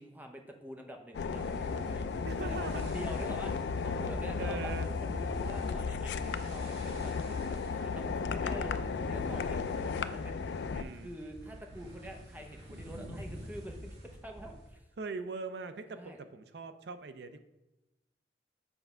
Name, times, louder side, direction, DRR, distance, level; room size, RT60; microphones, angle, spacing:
voice 1, 0.0-7.1 7.6-10.5 11.0-14.8 15.9-16.2, equal, 10° right, 3 dB, 0.7 m, -46 dB
sound 1, 1.1-10.8, left 5 dB, 70° left, 0.3 m, -34 dB
sound 2, 1.3-14.7, equal, 85° right, 1.9 m, -47 dB
voice 2, 2.2-3.0 4.4-4.9 10.7-11.1 15.0-17.4, right 4 dB, 70° right, 10 dB, 0.5 m, -41 dB
7.1 x 3.4 x 5.4 m, 0.97 s
head